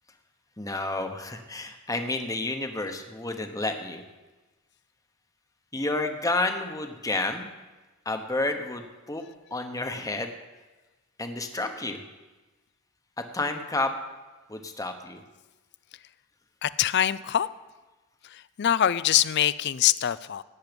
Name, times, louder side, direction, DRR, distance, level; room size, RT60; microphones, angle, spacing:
voice 1, 0.6-4.0 5.7-7.5 8.0-9.2 9.5-10.3 11.2-12.0 13.2-13.9 14.5-15.2, left 2 dB, 15° left, 5 dB, 1.0 m, -30 dB
voice 2, 16.6-17.5 18.3-20.4, left 11 dB, 50° left, 17 dB, 0.4 m, -24 dB
16.5 x 9.6 x 5.2 m, 1.2 s
head